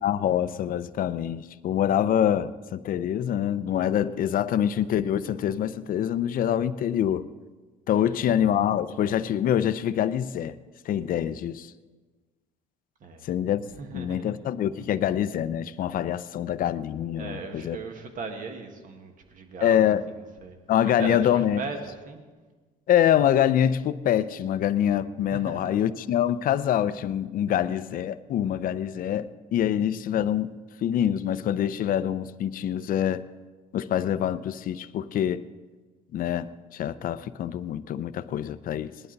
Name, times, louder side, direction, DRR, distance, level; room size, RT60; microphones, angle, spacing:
voice 1, 0.0-7.3 7.9-10.5 10.9-11.7 13.2-13.6 13.9-17.8 19.6-20.0 20.7-21.6 22.9-30.5 30.8-33.2 33.7-35.4 36.1-38.9, left 10 dB, 55° left, 0.6 m, -25 dB
voice 2, 7.9-8.3 13.0-13.2 13.7-14.3 17.2-22.2 25.3-25.8, right 4 dB, 50° right, 1.7 m, -38 dB
19.5 x 11.0 x 4.0 m
cardioid pair, 110°, 17 cm